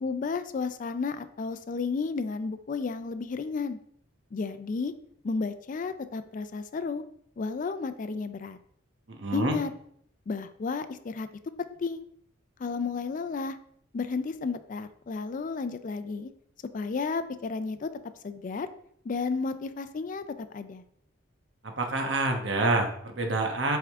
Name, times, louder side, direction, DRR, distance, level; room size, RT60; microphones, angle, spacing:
voice 1, 0.0-3.8 4.3-4.9 5.2-7.0 7.4-8.6 9.3-9.7 10.3-11.3 11.7-12.0 12.6-13.6 13.9-16.3 16.7-17.9 18.2-18.7 19.0-20.8, left 4 dB, 45° left, 11 dB, 0.4 m, -32 dB
voice 2, 9.2-9.6 21.6-23.8, right 2 dB, 70° right, 3 dB, 1.1 m, -27 dB
7.7 x 3.6 x 3.6 m, 0.67 s
head